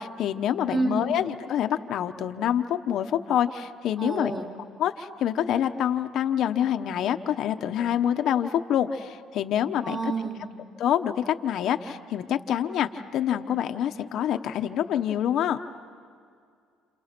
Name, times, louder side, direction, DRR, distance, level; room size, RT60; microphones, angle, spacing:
voice 1, 0.0-4.3 4.8-10.0 10.8-15.6, left 10 dB, 60° left, 7 dB, 0.9 m, -26 dB
voice 2, 0.7-1.1 4.0-4.5 9.8-10.5, right 2 dB, 20° right, 0 dB, 3.3 m, -29 dB
29.5 x 29.0 x 6.1 m, 2.2 s
cardioid pair, 125°, 0 cm